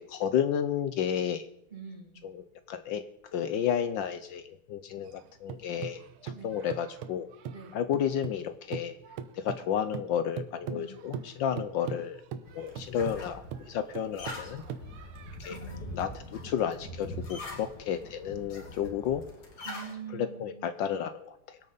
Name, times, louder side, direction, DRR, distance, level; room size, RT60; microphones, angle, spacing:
voice 1, 0.0-1.5 2.2-2.4 2.7-3.0 3.3-7.3 7.7-9.0 9.3-12.2 12.5-14.6 15.4-15.6 16.0-19.2 20.1-21.6, left 9 dB, 70° left, 11 dB, 1.3 m, -32 dB
voice 2, 1.7-2.2 6.3-6.6 7.5-7.8 10.7-11.0 15.5-16.2 19.6-20.8, right 6 dB, 25° right, 1 dB, 2.6 m, -45 dB
sound 1, 5.0-8.5 8.7-15.4, right 7 dB, 85° right, 1.7 m, -41 dB
sound 2, 12.5-19.9, left 1 dB, 50° left, 2.7 m, -43 dB
24.0 x 8.7 x 4.0 m, 0.75 s
omnidirectional pair, 2.2 m